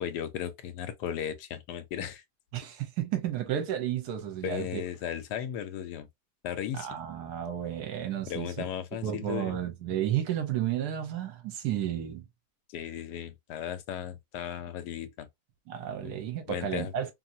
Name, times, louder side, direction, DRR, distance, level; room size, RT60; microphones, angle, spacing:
voice 1, 0.0-2.2 4.4-6.1 6.4-7.0 8.3-9.6 12.7-15.3 16.0-16.1 16.5-16.9, left 9 dB, 80° left, 1.1 m, -36 dB
voice 2, 2.5-4.8 6.8-8.5 9.0-12.2 15.7-17.1, right 10 dB, 75° right, 1.2 m, -32 dB
2.9 x 2.7 x 2.5 m
omnidirectional pair, 1.8 m